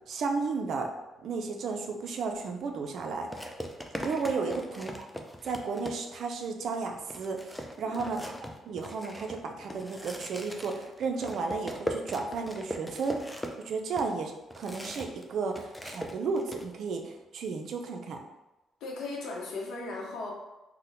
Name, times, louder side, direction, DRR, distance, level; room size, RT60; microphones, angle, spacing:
voice 1, 0.1-0.9 1.2-3.5 4.0-5.1 5.4-8.3 8.6-18.2, right 4 dB, 65° right, 3 dB, 0.4 m, -33 dB
sound 1, 2.3-2.5 3.3-6.3 6.7-6.8 7.1-15.2 15.5-16.7, equal, 5° left, 0.4 m, -40 dB
voice 2, 18.8-20.3, left 3 dB, 80° left, -2 dB, 0.8 m, -37 dB
4.1 x 2.1 x 2.6 m, 1.0 s
cardioid pair, 90°, 0 cm